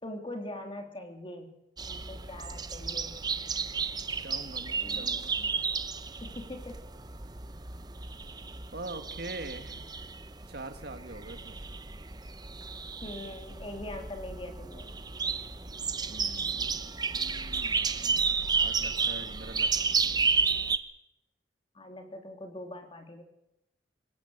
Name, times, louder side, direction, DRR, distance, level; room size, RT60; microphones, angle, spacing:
voice 1, 0.0-1.5 1.9-3.2 4.7-5.6 6.2-6.8 13.0-14.9 21.7-23.2, left 1 dB, 30° left, 4 dB, 3.2 m, -42 dB
sound 1, 1.8-20.8, right 5 dB, 20° right, 0.9 m, -32 dB
voice 2, 4.2-5.3 8.7-9.8 10.5-11.6 15.9-20.3, right 2 dB, 60° right, 7 dB, 2.1 m, -44 dB
25.5 x 15.5 x 8.3 m, 0.90 s
head